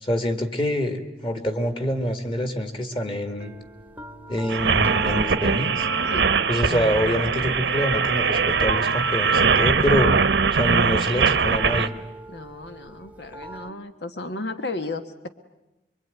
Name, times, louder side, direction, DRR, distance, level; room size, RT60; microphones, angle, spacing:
voice 1, 0.0-3.5 4.3-5.9 6.5-10.1 10.5-11.9, equal, 30° left, 7 dB, 2.2 m, -26 dB
sound 1, 3.3-13.7, right 1 dB, 10° right, 1.0 m, -42 dB
sound 2, 4.5-11.9, right 5 dB, 90° right, 1.0 m, -21 dB
voice 2, 12.3-15.3, left 2 dB, 80° left, 9 dB, 1.4 m, -34 dB
24.0 x 24.0 x 9.3 m, 0.95 s
head